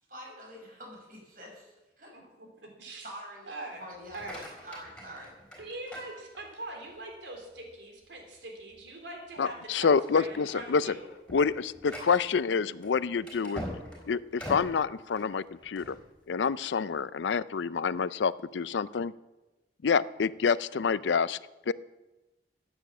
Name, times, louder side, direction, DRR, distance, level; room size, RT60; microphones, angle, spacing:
voice 1, 0.1-2.1 3.0-3.5 3.8-5.3, equal, 50° right, -1 dB, 6.0 m, -46 dB
voice 2, 2.1-2.5 2.8-3.1 3.5-3.8 4.1-4.4 5.6-11.1, right 2 dB, 85° right, 2 dB, 3.4 m, -42 dB
sound 1, 4.0-6.8 7.3-7.7 8.2-8.3 8.7-8.9 9.5-9.8 10.2-16.0, equal, 5° left, 4.0 m, -44 dB
voice 3, 9.4-11.0 11.3-13.6 14.1-16.0 16.3-19.1 19.8-21.4 21.7-21.8, left 5 dB, 90° left, 18 dB, 0.5 m, -27 dB
15.0 x 9.1 x 7.3 m, 1.1 s
head